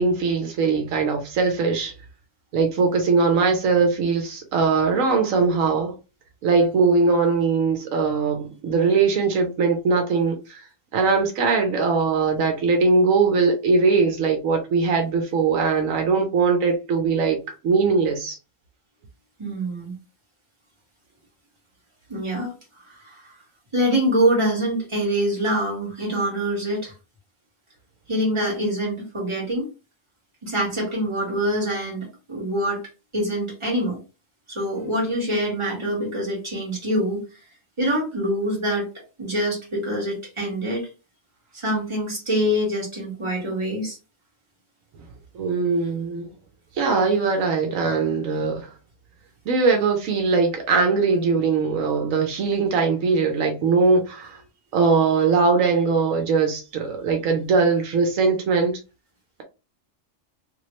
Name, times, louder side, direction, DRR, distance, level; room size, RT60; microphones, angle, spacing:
voice 1, 0.0-1.9 2.5-5.9 6.4-10.6 10.9-17.4 17.6-18.4 45.3-46.3 46.8-48.7 49.5-54.4 54.7-58.8, right 4 dB, 85° right, 1.2 m, -21 dB
voice 2, 19.4-19.9 22.1-22.5 22.9-23.2 23.7-26.9 28.1-29.7 30.4-32.8 33.1-34.0 34.5-37.2 37.8-38.9 39.2-40.9 41.5-44.0, right 1 dB, 25° right, 1.5 m, -25 dB
3.0 x 2.8 x 3.0 m
omnidirectional pair, 1.3 m